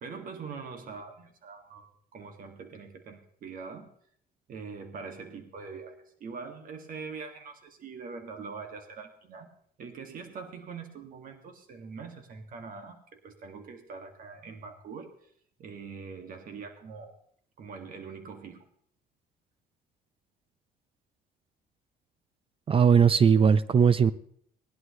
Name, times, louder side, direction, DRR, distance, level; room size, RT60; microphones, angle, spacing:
voice 1, 0.0-3.9 4.5-9.5 9.8-15.1 15.6-17.2 17.6-18.6, right 5 dB, 55° right, 5 dB, 2.1 m, -43 dB
voice 2, 22.7-24.1, right 6 dB, 35° right, 17 dB, 0.5 m, -19 dB
19.5 x 11.0 x 3.2 m, 0.63 s
cardioid pair, 110°, 17 cm